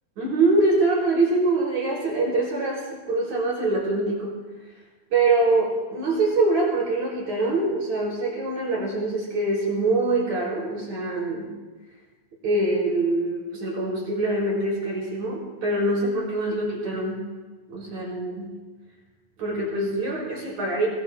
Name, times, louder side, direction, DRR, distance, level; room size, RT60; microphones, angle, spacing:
voice 1, 0.2-4.4 5.1-11.5 12.4-17.2 17.7-18.5 19.4-20.9, right 2 dB, 40° right, -5 dB, 5.3 m, -24 dB
22.0 x 20.0 x 2.2 m, 1.3 s
omnidirectional pair, 5.4 m